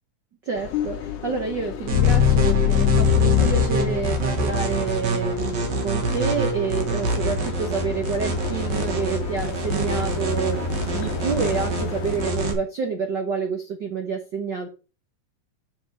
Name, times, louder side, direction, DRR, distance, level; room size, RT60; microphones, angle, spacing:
sound 1, 0.5-12.3, left 10 dB, 70° left, 1.5 m, -35 dB
voice 1, 0.5-14.7, right 5 dB, 75° right, 1.0 m, -28 dB
sound 2, 0.7-4.8, left 12 dB, 85° left, 2.1 m, -21 dB
sound 3, 1.9-12.5, right 3 dB, 60° right, 2.4 m, -26 dB
6.1 x 5.3 x 4.7 m
omnidirectional pair, 3.5 m